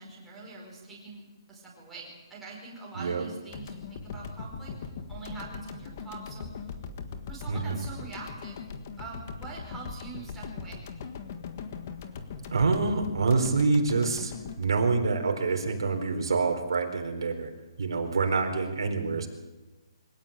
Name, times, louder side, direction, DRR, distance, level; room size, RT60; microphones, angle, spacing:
voice 1, 0.0-6.6 7.3-8.6 9.0-10.8, right 3 dB, ahead, -6 dB, 5.0 m, -44 dB
sound 1, 3.5-15.7, left 5 dB, 30° left, 1.6 m, -40 dB
voice 2, 7.5-7.8 12.5-17.5 17.8-19.3, right 4 dB, 65° right, 4 dB, 4.1 m, -26 dB
24.0 x 17.5 x 8.9 m, 1.1 s
hypercardioid pair, 180°, 3 cm